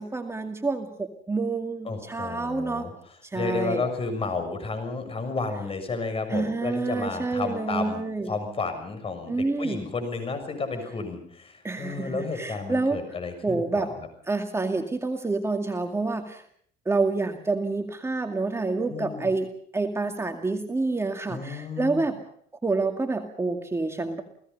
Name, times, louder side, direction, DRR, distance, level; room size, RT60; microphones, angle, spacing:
voice 1, 0.0-2.9 3.2-3.8 6.3-8.3 9.3-9.8 11.6-13.0 13.4-13.9 14.3-16.4 16.9-19.5 19.7-22.2 22.6-24.2, right 3 dB, 15° right, 5 dB, 2.2 m, -28 dB
voice 2, 1.8-2.9 3.3-13.9 18.9-19.3 21.3-22.1, left 4 dB, 35° left, 8 dB, 6.7 m, -32 dB
29.5 x 18.0 x 5.5 m, 0.63 s
cardioid pair, 110°, 17 cm